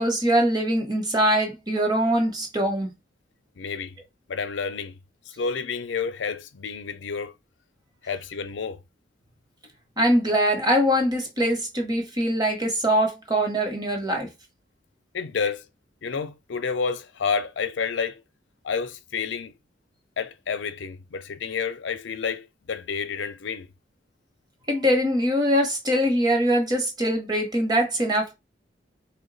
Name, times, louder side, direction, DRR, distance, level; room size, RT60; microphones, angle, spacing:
voice 1, 0.0-2.9 10.0-14.3 24.7-28.3, equal, 20° right, 1.0 m, -23 dB
voice 2, 3.6-4.0 4.3-4.9 5.4-7.3 8.0-8.8 15.1-15.7 16.0-18.2 18.6-19.5 20.2-23.7, left 5 dB, 80° left, 0.5 m, -29 dB
3.5 x 2.2 x 3.9 m
head